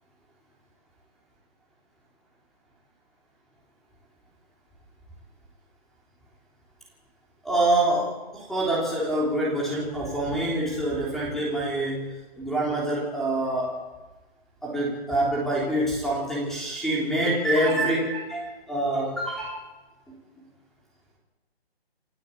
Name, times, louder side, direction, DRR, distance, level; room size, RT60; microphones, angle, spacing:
voice 1, 7.4-13.8 14.6-19.6, right 1 dB, ahead, -5 dB, 3.3 m, -26 dB
27.0 x 13.0 x 8.5 m, 1.2 s
hypercardioid pair, 165°, 31 cm